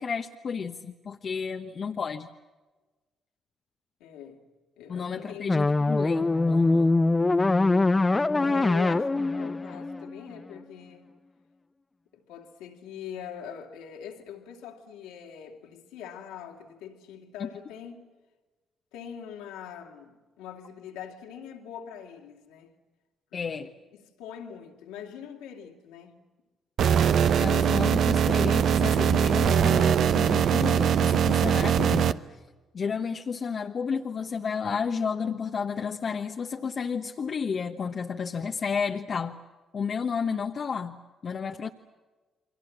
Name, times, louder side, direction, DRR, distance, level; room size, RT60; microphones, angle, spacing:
voice 1, 0.0-2.3 4.9-7.1 17.4-17.5 23.3-23.7 27.4-32.4 32.7-39.4 39.7-41.7, left 6 dB, 50° left, 1.1 m, -32 dB
voice 2, 4.0-4.4 4.8-5.5 8.4-11.1 12.1-18.0 18.9-22.7 23.3-26.2, left 8 dB, 75° left, 2.6 m, -43 dB
sound 1, 5.5-10.6, left 2 dB, 25° left, 0.8 m, -23 dB
sound 2, 26.8-32.1, right 8 dB, 60° right, 0.8 m, -22 dB
29.5 x 24.0 x 7.5 m
hypercardioid pair, 45°, 0 cm